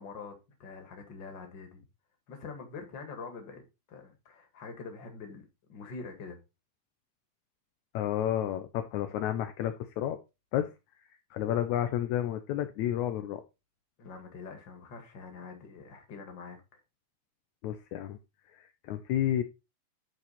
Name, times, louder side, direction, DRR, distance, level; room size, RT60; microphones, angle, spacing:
voice 1, 0.0-1.8 2.3-3.6 3.9-6.4 14.0-16.8, left 4 dB, 40° left, 2.0 m, -45 dB
voice 2, 7.9-10.2 10.5-10.7 11.3-13.4 17.6-18.2 18.6-19.4, left 11 dB, 75° left, 1.8 m, -31 dB
10.5 x 4.7 x 4.2 m
omnidirectional pair, 4.1 m